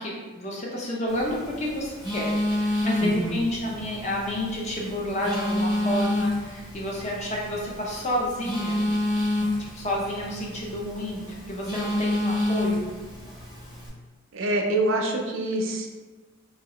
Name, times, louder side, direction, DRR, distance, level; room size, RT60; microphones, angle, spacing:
voice 1, 0.0-8.8 9.7-12.9, equal, 35° left, -3 dB, 0.6 m, -30 dB
Telephone, 1.1-13.9, left 1 dB, 15° left, 1.2 m, -29 dB
voice 2, 3.0-3.4 14.3-15.9, right 1 dB, 65° right, 2 dB, 0.5 m, -26 dB
2.8 x 2.8 x 2.9 m, 1.3 s
head